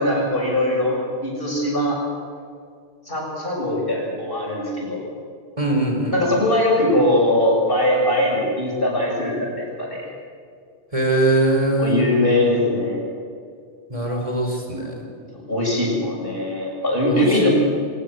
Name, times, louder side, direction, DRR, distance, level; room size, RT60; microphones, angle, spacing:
voice 1, 0.0-2.0 3.1-5.0 6.1-10.1 11.8-13.0 15.3-17.5, left 1 dB, 50° left, -2 dB, 7.7 m, -21 dB
voice 2, 5.6-6.2 10.9-12.0 13.9-14.9 17.1-17.5, right 1 dB, 30° right, 1 dB, 4.3 m, -21 dB
23.0 x 21.0 x 8.1 m, 2.2 s
omnidirectional pair, 1.2 m